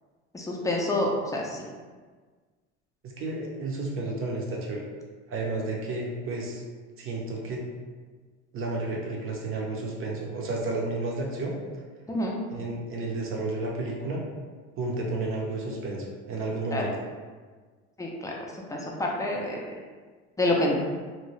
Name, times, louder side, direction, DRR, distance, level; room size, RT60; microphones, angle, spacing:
voice 1, 0.3-1.6 12.1-12.4 16.7-16.9 18.0-18.4 18.7-19.7 20.4-20.8, left 1 dB, 10° left, -2 dB, 0.5 m, -27 dB
voice 2, 3.0-4.8 5.3-6.6 7.0-7.6 8.5-11.5 12.5-14.2 14.8-16.9, right 2 dB, 45° right, -2 dB, 0.8 m, -31 dB
2.8 x 2.2 x 3.1 m, 1.5 s
supercardioid pair, 100°, 30 cm